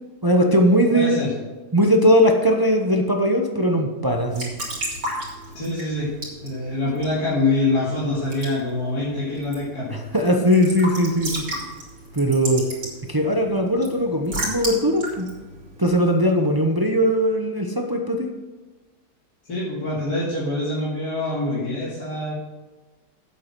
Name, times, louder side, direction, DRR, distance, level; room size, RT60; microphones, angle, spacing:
voice 1, 0.2-1.2 1.7-4.5 9.9-11.4 12.1-12.6 13.1-15.3 15.8-18.3, equal, 25° right, 2 dB, 0.5 m, -19 dB
voice 2, 0.9-1.3 5.5-6.1 6.4-10.0 19.5-22.3, left 2 dB, 65° left, -9 dB, 3.1 m, -25 dB
Raindrop / Drip / Trickle dribble, 4.1-16.6, right 1 dB, 85° right, 3.6 m, -35 dB
8.5 x 7.8 x 6.0 m, 1.2 s
omnidirectional pair, 1.8 m